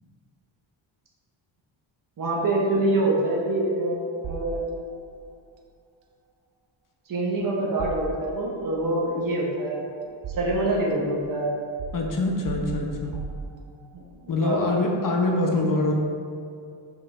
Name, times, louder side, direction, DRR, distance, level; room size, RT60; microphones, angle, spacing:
voice 1, 2.2-4.6 7.1-9.8 10.3-11.5 13.9-14.7, right 2 dB, 45° right, -3 dB, 1.2 m, -25 dB
sound 1, 4.2-5.1 7.8-8.7 9.6-10.9 11.8-14.0, right 5 dB, 70° right, 0.7 m, -37 dB
voice 2, 11.9-13.1 14.3-15.9, left 2 dB, 45° left, 1 dB, 0.9 m, -24 dB
5.5 x 5.1 x 3.6 m, 2.3 s
wide cardioid pair, 135°, 47 cm